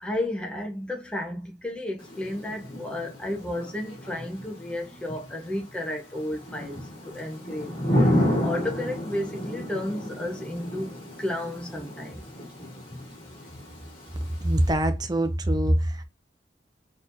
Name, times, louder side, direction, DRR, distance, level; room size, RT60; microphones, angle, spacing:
voice 1, 0.0-7.8 8.4-12.3, left 1 dB, 5° left, 0.8 m, -32 dB
Thunder / Rain, 2.0-14.7, equal, 30° left, 1.9 m, -32 dB
voice 2, 14.4-16.0, right 1 dB, 20° right, 0.6 m, -23 dB
3.9 x 3.1 x 2.7 m
head